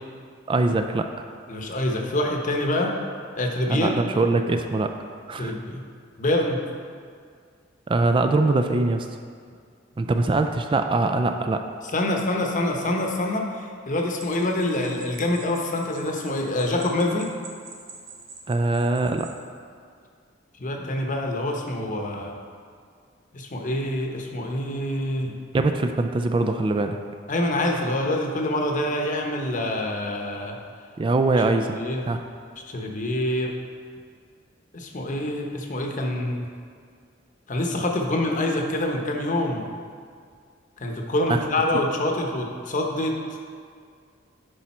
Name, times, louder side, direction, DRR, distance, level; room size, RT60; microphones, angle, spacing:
voice 1, 0.5-1.2 3.7-5.0 5.3-5.5 7.9-9.1 10.0-11.7 18.5-19.3 25.5-27.0 31.0-31.8 32.1-32.2 41.3-41.4, right 2 dB, 25° right, 6 dB, 0.3 m, -22 dB
voice 2, 1.5-2.9 3.3-3.9 5.4-5.8 6.2-6.6 11.9-17.3 20.6-22.3 23.3-25.3 27.3-30.6 31.6-32.0 32.7-33.5 34.7-36.5 37.5-39.6 40.8-43.1, left 1 dB, 40° left, 1 dB, 0.9 m, -26 dB
sound 1, 14.2-19.4, right 4 dB, 70° right, 1.1 m, -46 dB
10.0 x 5.0 x 4.3 m, 2.2 s
head